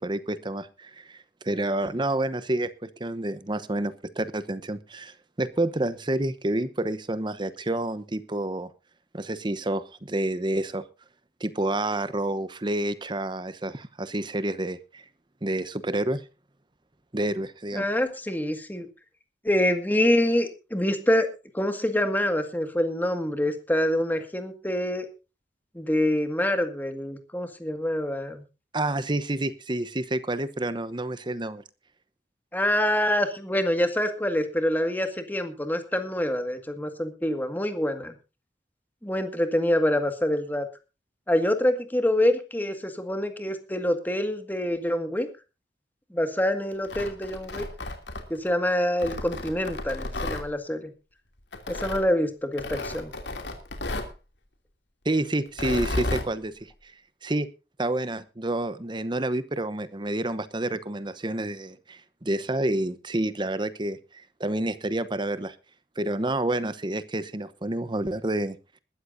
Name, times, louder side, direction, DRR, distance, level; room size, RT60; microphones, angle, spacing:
voice 1, 0.0-8.7 9.1-10.9 11.4-15.0 15.4-16.2 17.1-17.8 28.7-31.6 55.0-56.9 57.2-57.5 57.8-65.6 66.0-68.6, right 1 dB, 25° right, 14 dB, 0.9 m, -29 dB
voice 2, 17.7-18.9 19.4-21.3 21.5-25.1 25.7-28.4 32.5-38.1 39.0-40.7 41.3-45.3 46.1-47.7 48.3-50.9 51.7-53.1, left 1 dB, 10° left, 7 dB, 1.9 m, -26 dB
Tearing, 46.7-48.5 49.0-50.4 51.5-52.0 52.6-54.1 55.5-56.3, left 2 dB, 80° left, 2.8 m, -33 dB
20.5 x 13.0 x 2.7 m, 0.30 s
head